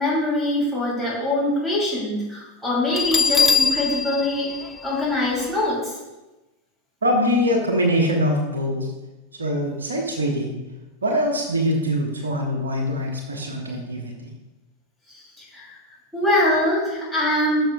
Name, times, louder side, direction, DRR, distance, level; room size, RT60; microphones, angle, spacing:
voice 1, 0.0-4.5 4.8-6.0 15.1-15.8 16.1-17.6, left 1 dB, ahead, -5 dB, 3.0 m, -23 dB
Bell, 2.9-5.7, left 5 dB, 15° left, 0.5 m, -23 dB
voice 2, 7.0-8.9 9.4-10.6 11.0-14.3, equal, 75° right, 1 dB, 1.3 m, -23 dB
13.5 x 6.4 x 2.3 m, 1.1 s
figure-of-eight pair, 90°, 0 cm